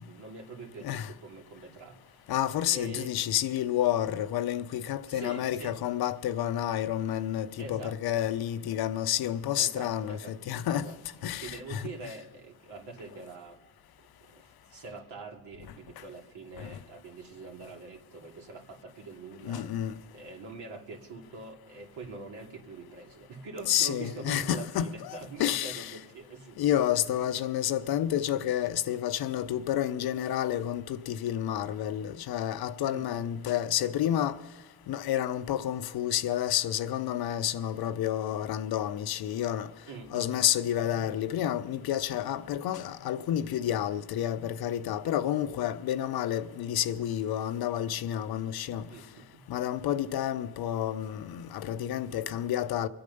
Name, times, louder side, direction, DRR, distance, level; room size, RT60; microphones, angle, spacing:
voice 1, 0.0-2.3 2.7-3.2 5.1-5.8 7.6-8.2 8.7-8.8 9.6-10.4 10.7-11.0 11.4-13.6 14.2-26.8 27.3-27.5 32.9-33.2 39.9-40.4 45.0-45.1 48.8-49.5 52.1-52.2, right 3 dB, 70° right, 2.8 m, -44 dB
voice 2, 2.3-10.9 11.2-11.8 16.6-16.8 19.4-19.9 23.7-25.9 26.6-34.4 34.9-39.7 40.1-48.9 49.5-52.9, left 11 dB, 60° left, 0.8 m, -30 dB
25.0 x 8.7 x 5.3 m
cardioid pair, 90°, 42 cm